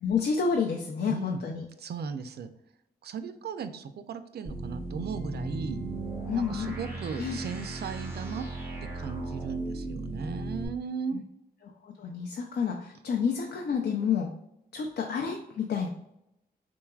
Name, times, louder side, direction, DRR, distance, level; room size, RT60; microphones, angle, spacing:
voice 1, 0.0-1.6 6.3-6.7 7.2-7.4 11.1-11.2 11.8-14.3 14.7-15.9, left 6 dB, 85° left, 1 dB, 0.5 m, -29 dB
voice 2, 1.1-1.4 1.8-2.5 3.0-5.8 6.3-8.5 8.8-11.2, right 6 dB, 80° right, 10 dB, 0.4 m, -36 dB
sound 1, 4.5-10.7, right 1 dB, 15° right, 0.9 m, -37 dB
sound 2, 5.0-8.2, right 10 dB, 25° left, 0.8 m, -44 dB
4.6 x 3.8 x 2.3 m, 0.82 s
wide cardioid pair, 180°, 17 cm